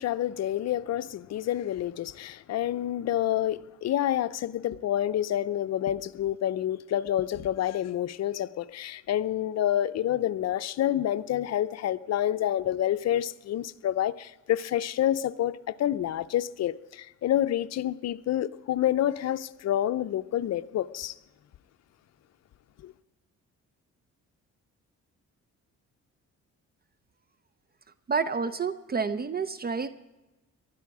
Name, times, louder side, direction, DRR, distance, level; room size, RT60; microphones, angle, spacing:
voice 1, 0.0-21.1 22.8-22.9, left 11 dB, 60° left, 0.7 m, -28 dB
voice 2, 28.1-29.9, right 5 dB, 30° right, 0.6 m, -29 dB
19.5 x 12.5 x 4.8 m
cardioid pair, 90°, 30 cm